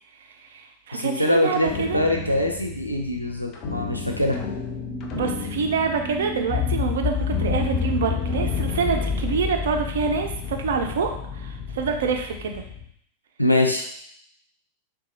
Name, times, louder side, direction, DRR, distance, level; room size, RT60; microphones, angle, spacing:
voice 1, 0.4-2.0 5.1-12.6, right 5 dB, 60° right, 4 dB, 0.4 m, -26 dB
voice 2, 0.9-4.4 13.4-13.9, left 1 dB, 90° left, 1 dB, 0.5 m, -23 dB
sound 1, 1.6-12.9, left 6 dB, 35° left, 0.5 m, -30 dB
sound 2, 3.6-8.7, right 5 dB, 25° right, 0.8 m, -37 dB
3.9 x 2.3 x 2.8 m, 0.68 s
figure-of-eight pair, 90°, 0 cm